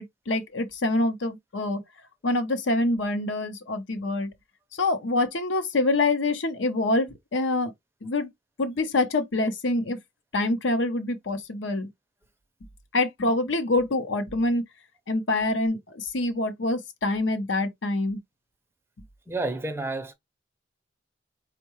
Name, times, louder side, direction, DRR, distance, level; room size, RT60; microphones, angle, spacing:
voice 1, 0.0-1.8 2.2-4.3 4.7-7.7 8.0-8.3 8.6-10.0 10.3-11.9 12.9-14.6 15.1-18.2, left 2 dB, 75° left, 0.7 m, -26 dB
voice 2, 19.3-20.1, right 2 dB, 15° right, 0.5 m, -30 dB
4.5 x 2.2 x 3.0 m
head